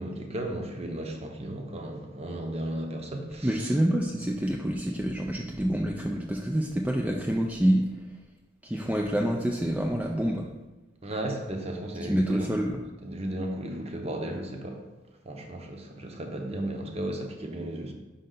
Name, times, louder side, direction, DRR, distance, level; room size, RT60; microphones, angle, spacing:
voice 1, 0.0-3.7 11.0-12.5 13.0-14.9 15.2-17.9, right 1 dB, 35° right, 0.8 m, -35 dB
voice 2, 3.4-7.9 8.6-10.5 12.1-12.8, right 1 dB, 5° right, 0.4 m, -27 dB
5.4 x 5.4 x 3.9 m
head